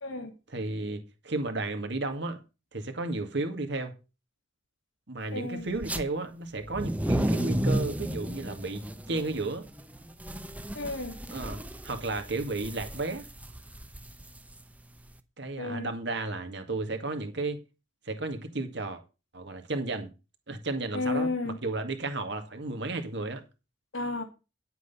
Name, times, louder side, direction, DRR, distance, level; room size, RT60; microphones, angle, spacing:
voice 1, 0.0-0.3 5.3-5.7 10.7-11.2 15.6-15.9 20.9-21.6 23.9-24.2, left 3 dB, 90° left, 2.6 m, -32 dB
voice 2, 0.5-2.4 2.7-3.9 5.1-9.6 11.3-11.6 11.8-13.3 15.4-17.6 18.1-19.0 19.3-20.1 20.5-23.4, right 2 dB, 60° right, 2.1 m, -33 dB
sound 1, 5.7-6.0 6.6-15.1, right 1 dB, 10° right, 0.8 m, -33 dB
10.5 x 8.2 x 5.5 m
head